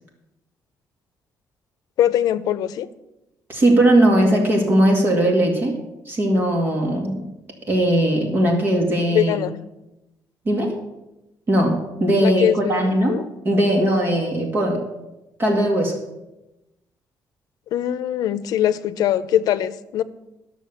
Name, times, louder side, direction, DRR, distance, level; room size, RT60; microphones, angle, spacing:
voice 1, 2.0-2.9 9.1-9.6 12.2-13.2 17.7-20.0, left 11 dB, 75° left, 14 dB, 0.6 m, -22 dB
voice 2, 3.5-5.7 6.1-7.2 7.7-9.4 10.5-10.7 11.5-13.2 13.4-14.8 15.4-16.0, right 1 dB, 35° right, 2 dB, 2.1 m, -19 dB
13.0 x 6.3 x 7.1 m, 0.96 s
cardioid pair, 155°, 6 cm